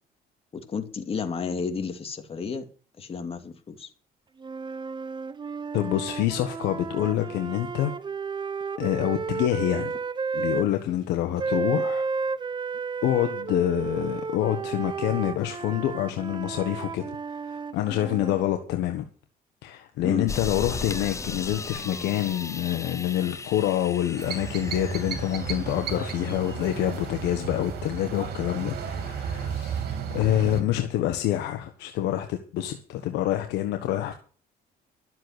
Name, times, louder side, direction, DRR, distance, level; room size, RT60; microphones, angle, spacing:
voice 1, 0.5-2.6 3.0-3.9 20.0-20.3, left 5 dB, 35° left, 2.5 m, -31 dB
sound 1, 4.4-10.7 11.4-18.5, right 5 dB, 25° right, 0.7 m, -32 dB
voice 2, 5.7-7.9 8.8-9.9 10.3-12.0 13.0-17.0 17.4-19.0 19.6-34.1, left 12 dB, 85° left, 1.4 m, -27 dB
sound 2, 20.3-26.7, left 4 dB, 15° left, 0.8 m, -37 dB
sound 3, 24.2-30.6, right 7 dB, 70° right, 3.4 m, -33 dB
12.5 x 7.7 x 8.1 m
cardioid pair, 110°, 17 cm